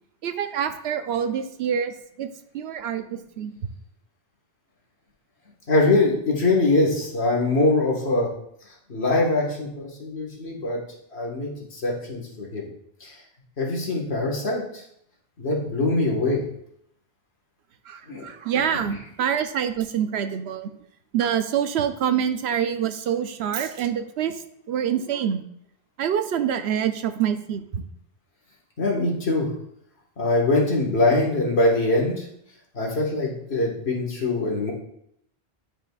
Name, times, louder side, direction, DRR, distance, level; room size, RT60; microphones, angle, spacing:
voice 1, 0.2-3.5 17.9-20.7 21.1-24.4 24.7-25.4 26.0-27.8, right 8 dB, 80° right, 9 dB, 0.9 m, -26 dB
voice 2, 5.7-8.3 8.9-10.8 11.1-12.7 13.0-13.1 13.6-14.8 15.4-16.4 18.1-18.3 28.8-29.5 30.2-32.2 32.7-34.7, left 2 dB, 80° left, -2 dB, 1.8 m, -23 dB
10.0 x 4.9 x 2.3 m, 0.73 s
omnidirectional pair, 1.1 m